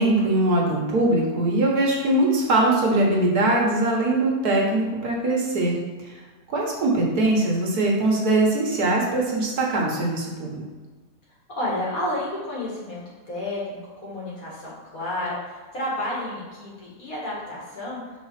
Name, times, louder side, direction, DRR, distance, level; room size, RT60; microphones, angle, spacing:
voice 1, 0.0-5.8 6.5-10.6, right 2 dB, 65° right, -2 dB, 1.7 m, -21 dB
voice 2, 11.5-13.0 13.3-18.0, left 1 dB, 55° left, -6 dB, 2.4 m, -31 dB
5.5 x 4.3 x 5.8 m, 1.3 s
omnidirectional pair, 1.8 m